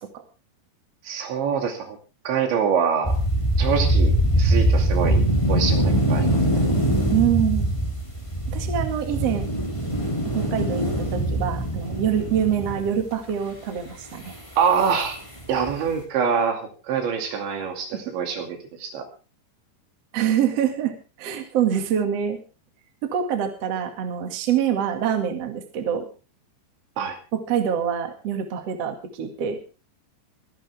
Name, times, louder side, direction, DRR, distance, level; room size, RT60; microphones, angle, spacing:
voice 1, 1.0-2.0 2.3-3.2 3.6-6.4 14.6-15.2 15.5-19.1 27.0-27.2, right 7 dB, 75° right, 4 dB, 4.8 m, -25 dB
sound 1, 3.0-13.1 14.3-14.4 14.8-15.1 15.4-15.9, right 1 dB, 10° left, 3.0 m, -22 dB
voice 2, 7.1-7.7 8.5-9.4 10.2-14.3 20.1-22.4 23.0-26.0 27.3-29.6, right 9 dB, 45° right, 5 dB, 2.5 m, -25 dB
24.5 x 11.0 x 3.5 m, 0.33 s
omnidirectional pair, 5.2 m